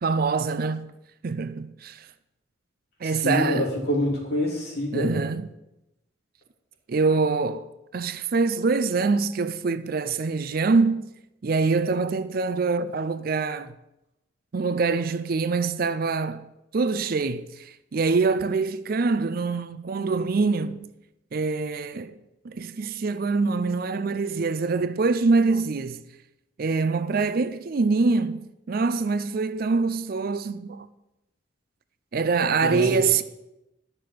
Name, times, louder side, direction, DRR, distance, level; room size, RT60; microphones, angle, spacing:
voice 1, 0.0-0.9 1.2-2.1 3.0-3.7 4.9-5.5 6.9-7.7 7.9-11.0 11.4-13.7 14.5-20.9 21.3-22.2 22.4-26.0 26.6-28.4 28.7-30.9 32.1-33.2, right 4 dB, 50° right, 0.4 m, -24 dB
voice 2, 3.2-5.1 32.6-32.9, left 1 dB, 50° left, 3.2 m, -26 dB
11.0 x 6.6 x 5.9 m
head